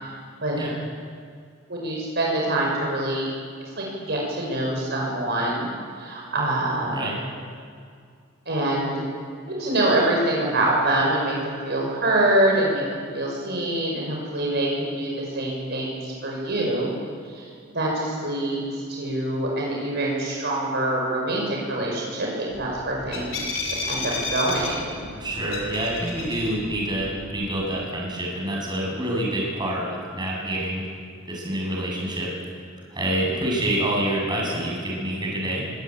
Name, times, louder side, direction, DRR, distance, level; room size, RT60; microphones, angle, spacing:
voice 1, 1.7-3.3 3.8-5.7 6.0-7.0 8.5-9.0 9.6-16.9 17.3-17.5 17.7-24.9, right 1 dB, 55° right, -2 dB, 5.7 m, -25 dB
sound 1, 22.5-27.5, left 3 dB, 70° left, 6.1 m, -33 dB
voice 2, 25.1-30.9 31.3-32.3 32.9-35.7, right 1 dB, 20° right, -3 dB, 7.5 m, -27 dB
24.0 x 18.5 x 9.4 m, 2.2 s
head